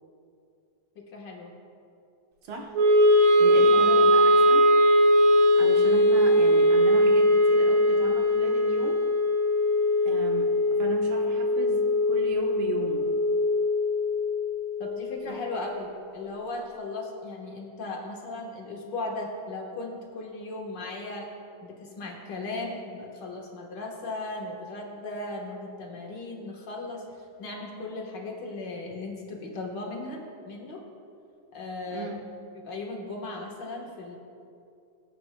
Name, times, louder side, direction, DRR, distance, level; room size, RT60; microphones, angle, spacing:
voice 1, 1.0-1.5 3.7-4.1 14.8-21.3 21.6-27.0 27.4-30.8 31.5-32.1 32.6-34.2, left 2 dB, 65° left, -1 dB, 1.9 m, -37 dB
Wind instrument woodwind instrument, 2.7-15.0, left 1 dB, 55° right, 1.4 m, -21 dB
voice 2, 3.4-4.7 5.6-9.0 10.1-10.5 10.8-13.1 31.9-32.2, right 3 dB, 85° right, 0 dB, 2.0 m, -35 dB
20.0 x 8.6 x 2.2 m, 2.5 s
omnidirectional pair, 2.2 m